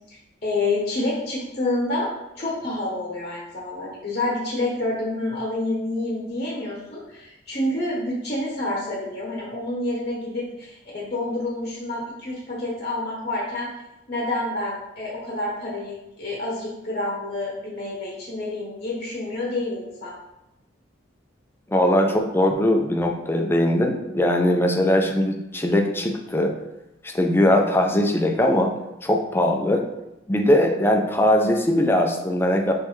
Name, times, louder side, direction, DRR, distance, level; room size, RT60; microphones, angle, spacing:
voice 1, 0.1-13.7 14.1-20.1, left 2 dB, 35° left, -4 dB, 1.0 m, -28 dB
voice 2, 21.7-26.5 27.0-28.7 29.0-29.8 30.3-32.7, left 1 dB, 10° left, 2 dB, 0.4 m, -20 dB
5.2 x 3.2 x 3.2 m, 0.93 s
head